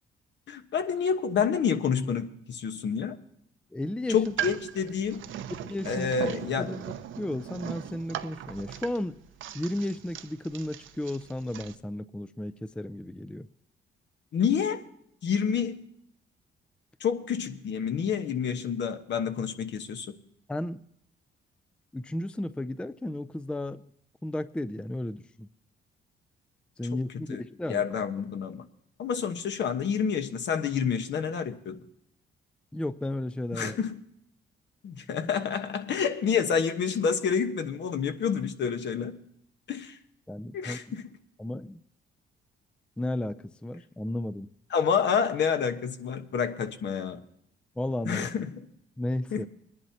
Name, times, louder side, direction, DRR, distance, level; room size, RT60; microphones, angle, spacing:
voice 1, 0.5-3.2 4.1-5.2 5.8-6.7 14.3-14.8 15.2-15.8 17.0-20.1 26.9-27.0 27.3-27.4 27.7-28.6 29.0-31.8 33.5-34.0 34.8-39.1 39.7-40.0 40.5-41.0 44.7-47.2 48.0-48.6 49.3-49.4, left 7 dB, 65° left, 8 dB, 1.2 m, -28 dB
voice 2, 3.7-4.2 5.6-6.1 6.6-9.2 9.5-13.5 20.5-20.8 21.9-23.8 24.2-25.5 26.8-27.8 32.7-33.8 40.3-41.0 41.4-41.8 43.0-44.5 47.8-48.3 49.0-49.5, left 1 dB, 5° left, 13 dB, 0.4 m, -34 dB
sound 1, 4.1-11.8, right 11 dB, 75° right, 0.7 m, -39 dB
21.5 x 11.0 x 2.9 m, 0.75 s
cardioid pair, 90°, 20 cm